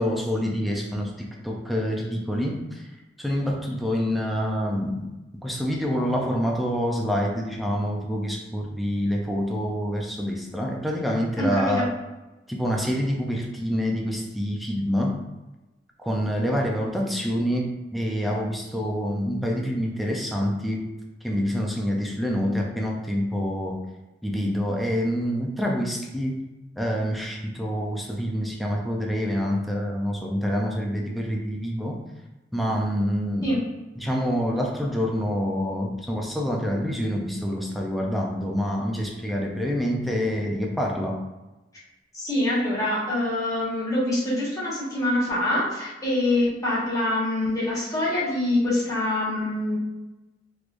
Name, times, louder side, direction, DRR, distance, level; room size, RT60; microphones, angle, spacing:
voice 1, 0.0-2.9 3.2-5.1 5.4-11.9 12.5-15.2 16.0-20.9 21.2-23.8 24.2-26.4 26.8-32.0 32.5-33.5 34.0-41.2, equal, ahead, -2 dB, 0.5 m, -26 dB
voice 2, 11.4-11.9 33.4-33.6 42.1-49.8, left 1 dB, 20° left, -8 dB, 1.4 m, -25 dB
3.4 x 3.1 x 2.5 m, 1.1 s
head